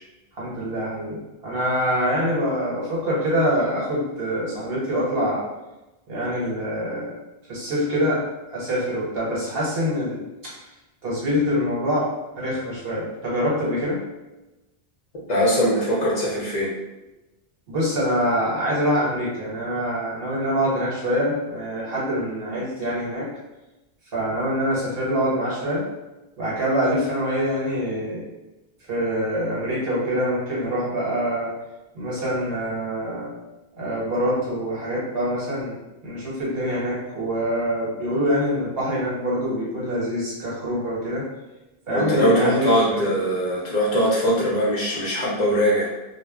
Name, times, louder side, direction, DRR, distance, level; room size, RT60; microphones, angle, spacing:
voice 1, 0.3-5.5 6.1-7.1 7.5-8.2 8.5-10.5 11.0-12.1 12.3-14.0 17.7-23.3 24.1-25.8 26.4-28.3 28.9-31.5 31.9-33.3 33.8-35.8 36.0-41.2 41.9-43.1, equal, 65° right, -6 dB, 1.1 m, -25 dB
voice 2, 15.3-16.7 41.9-45.9, equal, 50° left, -5 dB, 0.7 m, -21 dB
2.2 x 2.0 x 3.5 m, 1.0 s
omnidirectional pair, 1.1 m